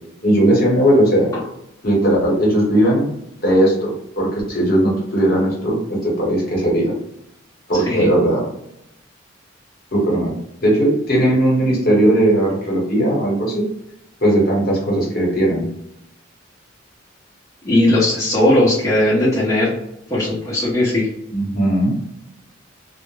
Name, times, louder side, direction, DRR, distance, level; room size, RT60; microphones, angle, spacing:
voice 1, 0.2-1.3 1.8-3.1 3.4-6.9 7.7-8.5 9.9-10.3 10.6-13.6 14.2-15.7 21.3-22.0, right 1 dB, 45° left, -3 dB, 0.9 m, -17 dB
voice 2, 17.6-19.7 20.1-21.1, left 1 dB, 15° left, -9 dB, 0.6 m, -17 dB
2.2 x 2.0 x 3.1 m, 0.80 s
head